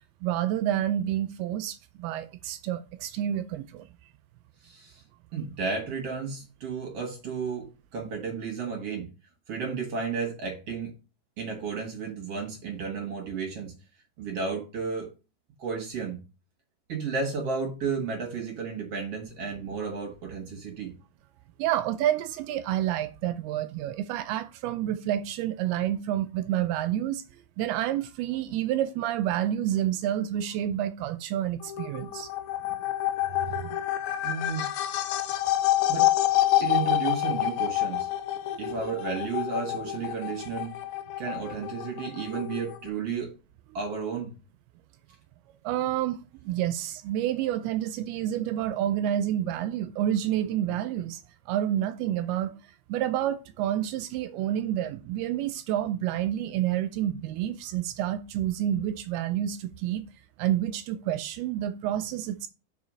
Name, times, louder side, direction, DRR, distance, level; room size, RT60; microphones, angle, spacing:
voice 1, 0.2-3.9 21.6-27.2 27.6-32.3 33.5-33.8 38.5-38.6 45.6-51.2 51.5-52.5 52.9-60.0 60.4-62.5, right 11 dB, 85° right, 2.3 m, -29 dB
voice 2, 4.6-5.0 5.3-7.7 7.9-9.1 9.5-10.9 11.4-13.7 14.2-15.1 15.6-16.2 16.9-20.9 34.2-34.6 35.9-36.1 36.6-38.1 38.6-40.7 41.2-43.3 43.7-44.3, right 5 dB, 55° right, 1.8 m, -32 dB
sound 1, 31.6-42.9, left 14 dB, 85° left, 2.2 m, -28 dB
5.5 x 4.8 x 6.2 m
omnidirectional pair, 4.8 m